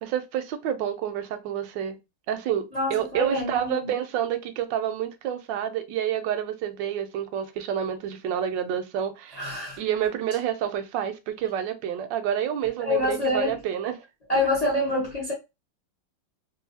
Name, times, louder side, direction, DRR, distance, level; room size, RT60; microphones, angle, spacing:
voice 1, 0.0-2.0 2.3-2.6 2.9-9.4 9.8-14.0, right 9 dB, 80° right, 1.2 m, -28 dB
voice 2, 2.7-3.9 9.3-9.8 12.8-13.6 14.3-15.3, left 2 dB, 40° left, 0.5 m, -26 dB
3.1 x 2.5 x 2.7 m
omnidirectional pair, 2.0 m